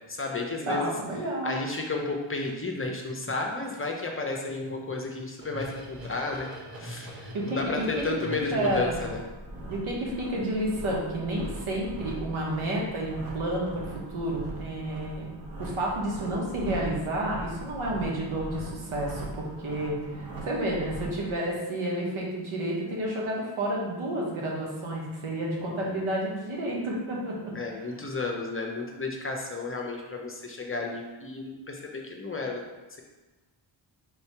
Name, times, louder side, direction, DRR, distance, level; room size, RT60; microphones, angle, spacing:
voice 1, 0.1-0.9 1.4-6.5 6.8-9.2 25.8-25.9 27.5-32.6, left 3 dB, 25° left, 1 dB, 0.6 m, -32 dB
voice 2, 0.7-1.5 7.3-7.9 8.5-9.0 9.7-15.3 15.6-27.5, right 1 dB, 80° right, -3 dB, 1.2 m, -30 dB
sound 1, 5.4-21.3, right 1 dB, 45° right, 1.0 m, -41 dB
3.7 x 2.7 x 4.6 m, 1.2 s
cardioid pair, 80°, 48 cm